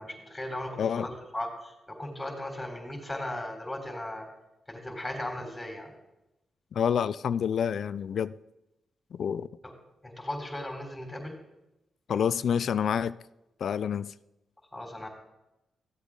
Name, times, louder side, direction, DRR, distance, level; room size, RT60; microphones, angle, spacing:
voice 1, 0.0-4.3 4.7-5.9 9.6-9.7 10.0-11.4 14.7-15.1, left 1 dB, 15° left, 3.6 m, -37 dB
voice 2, 6.7-8.3 9.1-9.5 12.1-13.1 13.6-14.1, left 8 dB, 70° left, 0.3 m, -28 dB
14.5 x 7.9 x 3.7 m
supercardioid pair, 50°, 0 cm